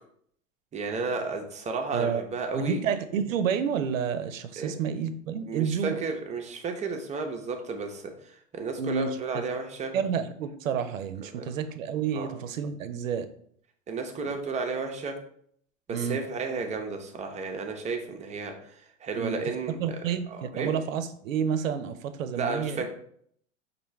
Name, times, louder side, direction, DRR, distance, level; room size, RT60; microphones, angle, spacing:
voice 1, 0.7-2.8 4.6-4.8 5.5-9.9 11.3-11.5 12.1-12.3 13.9-15.1 15.9-18.5 19.0-19.8 20.3-20.7 22.3-22.9, right 4 dB, 20° right, 4 dB, 0.6 m, -32 dB
voice 2, 2.5-6.0 8.8-9.4 9.9-13.3 15.9-16.2 19.1-19.4 19.8-22.9, right 7 dB, 80° right, 11 dB, 0.6 m, -30 dB
5.4 x 2.7 x 3.1 m, 0.65 s
hypercardioid pair, 95°, 39 cm